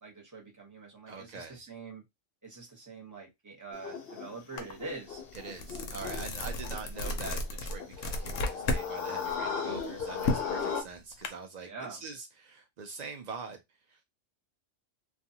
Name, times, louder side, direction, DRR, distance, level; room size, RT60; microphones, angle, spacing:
voice 1, 0.0-2.0 2.4-5.2 11.6-12.0, right 3 dB, 15° right, 0.8 m, -44 dB
voice 2, 1.1-1.6 5.4-13.6, right 5 dB, 85° right, 0.3 m, -44 dB
Howler Monkey, 3.7-10.8, left 6 dB, 55° left, 0.8 m, -37 dB
sound 1, 4.6-4.7 5.1-8.9 9.2-11.3, left 2 dB, 85° left, 1.0 m, -33 dB
2.5 x 2.3 x 2.7 m
omnidirectional pair, 1.3 m